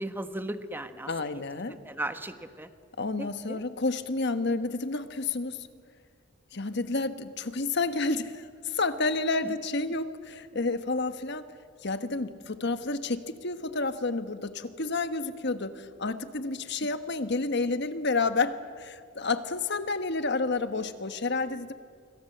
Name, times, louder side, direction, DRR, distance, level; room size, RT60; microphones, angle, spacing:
voice 1, 0.0-1.4 1.8-2.7 3.2-3.6 9.4-9.5, right 1 dB, 10° right, 9 dB, 1.2 m, -36 dB
voice 2, 1.1-1.8 3.0-5.7 6.5-11.5 11.8-21.7, left 3 dB, 60° left, 10 dB, 1.3 m, -30 dB
26.5 x 24.0 x 7.9 m, 2.2 s
head